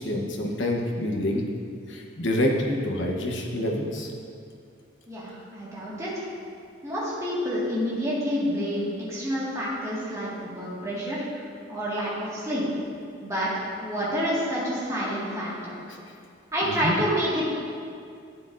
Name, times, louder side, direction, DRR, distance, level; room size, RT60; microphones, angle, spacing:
voice 1, 0.0-1.4 1.9-4.1 16.6-17.0, left 1 dB, 65° left, 0 dB, 1.1 m, -27 dB
voice 2, 5.1-6.2 6.8-11.2 11.7-12.6 13.2-13.5 13.8-15.8 16.5-17.5, equal, 15° right, -8 dB, 1.9 m, -28 dB
11.0 x 8.8 x 2.6 m, 2.3 s
head